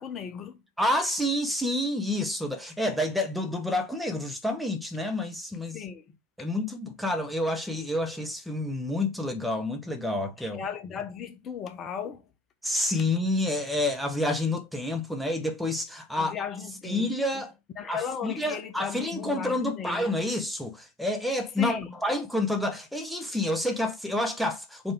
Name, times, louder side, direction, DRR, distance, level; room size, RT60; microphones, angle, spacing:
voice 1, 0.0-0.6 5.7-6.0 10.4-12.2 16.1-17.4 17.8-20.1 21.6-21.9, left 7 dB, 25° left, 1.2 m, -36 dB
voice 2, 0.8-5.8 6.4-10.6 12.6-16.3 16.8-17.5 17.9-24.9, left 1 dB, ahead, 1.2 m, -29 dB
5.3 x 5.2 x 3.6 m
figure-of-eight pair, 90°, 0 cm